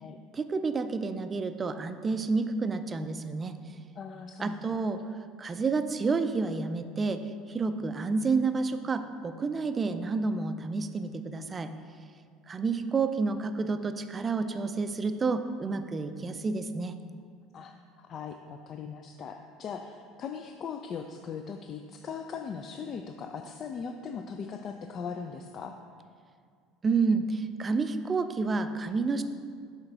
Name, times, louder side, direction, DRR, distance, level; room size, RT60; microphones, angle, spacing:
voice 1, 0.3-3.5 4.4-7.2 7.5-11.7 12.5-17.0 26.8-29.2, right 4 dB, 25° right, 9 dB, 0.4 m, -29 dB
voice 2, 4.0-4.8 17.5-25.8, left 6 dB, 40° left, 5 dB, 0.3 m, -39 dB
6.8 x 4.4 x 3.9 m, 2.1 s
figure-of-eight pair, 65°, 0 cm